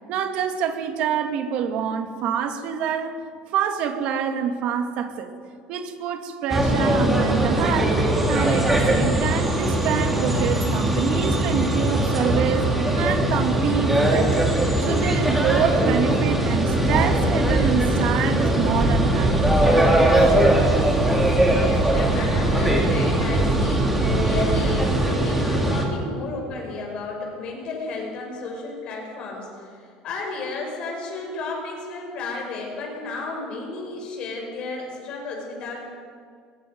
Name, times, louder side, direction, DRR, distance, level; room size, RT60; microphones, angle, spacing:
voice 1, 0.1-3.2 3.5-5.3 5.7-8.0 8.3-14.5 14.8-19.4, right 7 dB, 50° right, 6 dB, 2.1 m, -26 dB
sound 1, 6.5-25.8, right 1 dB, 5° right, 3.1 m, -21 dB
Train, 18.7-25.0, right 4 dB, 75° right, 4.8 m, -27 dB
voice 2, 21.3-35.9, left 3 dB, 40° left, 0 dB, 6.2 m, -33 dB
24.0 x 21.0 x 5.3 m, 2.1 s
cardioid pair, 165°, 2 cm